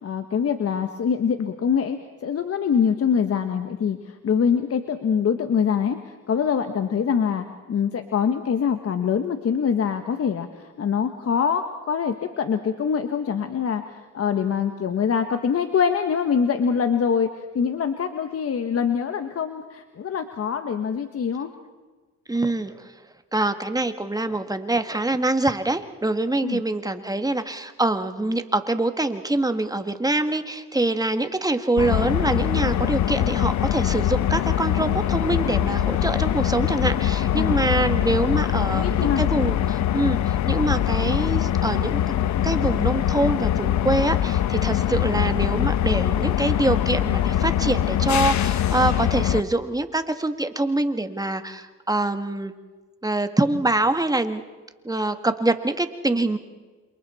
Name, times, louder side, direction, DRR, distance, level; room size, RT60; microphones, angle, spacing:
voice 1, 0.0-21.5 26.4-26.6 37.4-37.7 38.7-39.2, left 7 dB, 50° left, 7 dB, 1.5 m, -24 dB
voice 2, 22.3-22.9 23.3-42.0 42.4-52.5 53.0-54.4 54.8-56.4, right 2 dB, 10° right, 8 dB, 1.5 m, -25 dB
sound 1, 31.8-49.4, left 11 dB, 65° left, 0.9 m, -23 dB
29.0 x 27.0 x 4.3 m, 1.3 s
cardioid pair, 90°, 30 cm